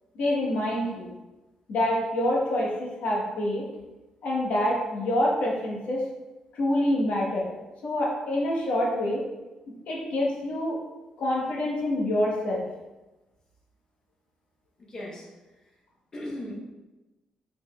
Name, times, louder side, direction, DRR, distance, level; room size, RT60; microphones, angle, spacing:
voice 1, 0.1-1.1 1.7-3.6 4.2-6.0 6.5-7.5 7.8-9.2 9.9-10.8 11.2-12.6, left 1 dB, 65° left, -3 dB, 1.3 m, -26 dB
voice 2, 14.8-15.2 16.1-16.5, left 1 dB, 30° left, -3 dB, 1.0 m, -37 dB
5.0 x 4.2 x 2.4 m, 1.1 s
cardioid pair, 165°, 2 cm